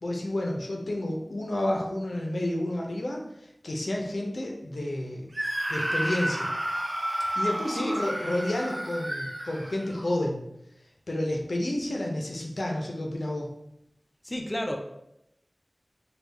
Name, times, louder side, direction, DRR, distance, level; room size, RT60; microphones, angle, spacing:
voice 1, 0.0-5.3 5.7-6.5 7.3-10.4 11.1-13.5, left 1 dB, 80° left, 0 dB, 0.5 m, -30 dB
Screaming, 5.3-10.2, right 1 dB, 45° right, 0.5 m, -31 dB
voice 2, 7.8-8.3 14.2-14.8, left 1 dB, 25° left, 2 dB, 0.4 m, -32 dB
3.3 x 2.3 x 3.5 m, 0.80 s
wide cardioid pair, 45°, 0 cm